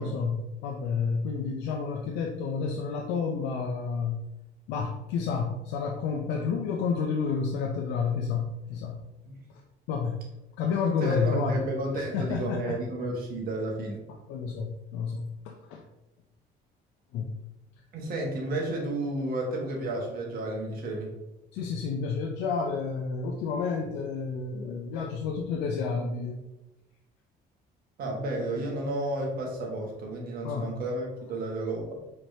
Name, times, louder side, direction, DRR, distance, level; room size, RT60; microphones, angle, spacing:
voice 1, 0.0-4.2 4.7-9.0 9.9-10.2 10.6-11.6 11.9-12.8 14.1-15.8 17.1-17.3 21.5-26.4 30.4-30.7, left 5 dB, 90° left, 1 dB, 0.5 m, -30 dB
voice 2, 11.0-14.0 17.9-21.1 28.0-31.8, right 1 dB, 60° right, -1 dB, 1.3 m, -32 dB
4.4 x 3.3 x 2.7 m, 0.96 s
cardioid pair, 110°, 17 cm